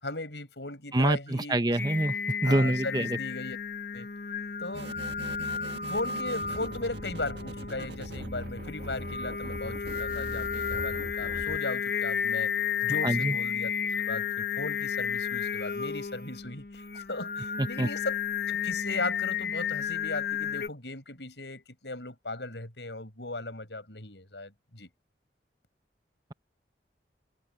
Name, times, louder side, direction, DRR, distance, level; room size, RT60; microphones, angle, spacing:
voice 1, 0.0-1.6 2.4-3.6 3.9-4.1 4.6-4.9 5.9-12.5 12.8-18.2 18.5-24.9, left 2 dB, 80° left, 7.1 m, -37 dB
voice 2, 0.9-2.2 2.4-3.2 13.0-13.4 17.6-17.9, right 1 dB, 20° right, 0.7 m, -26 dB
Singing, 1.8-20.7, left 7 dB, 55° left, 1.2 m, -33 dB
sound 1, 4.7-11.6, right 1 dB, 80° right, 1.7 m, -41 dB
head